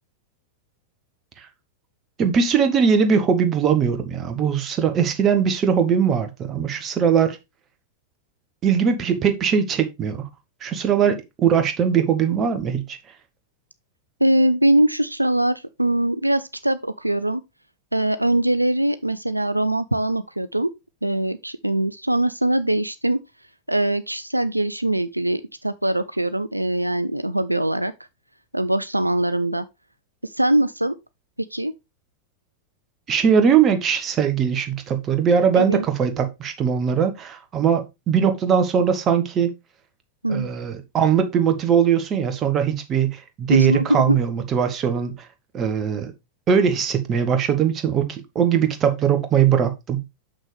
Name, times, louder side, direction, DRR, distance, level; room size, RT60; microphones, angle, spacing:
voice 1, 2.2-7.4 8.6-10.2 10.6-13.0 33.1-39.5 40.3-45.1 45.5-46.1 46.5-50.0, right 7 dB, 30° right, 1.2 m, -20 dB
voice 2, 14.2-17.4 17.9-20.7 21.0-23.2 23.7-27.9 28.5-29.6 30.2-30.9 31.5-31.7 35.6-35.8 40.2-40.5 43.5-44.2, right 1 dB, 85° right, 0.4 m, -22 dB
6.5 x 6.0 x 3.3 m
figure-of-eight pair, 90°, 0 cm